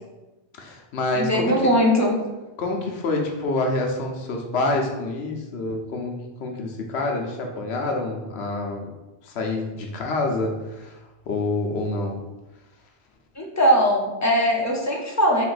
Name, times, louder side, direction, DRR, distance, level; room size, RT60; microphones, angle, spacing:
voice 1, 0.6-1.5 2.6-8.9 9.2-11.0 11.3-12.2, left 2 dB, 70° left, 2 dB, 0.9 m, -27 dB
voice 2, 1.1-2.1 13.4-15.4, equal, 30° left, -1 dB, 0.3 m, -20 dB
3.6 x 2.5 x 3.9 m, 1.1 s
omnidirectional pair, 1.1 m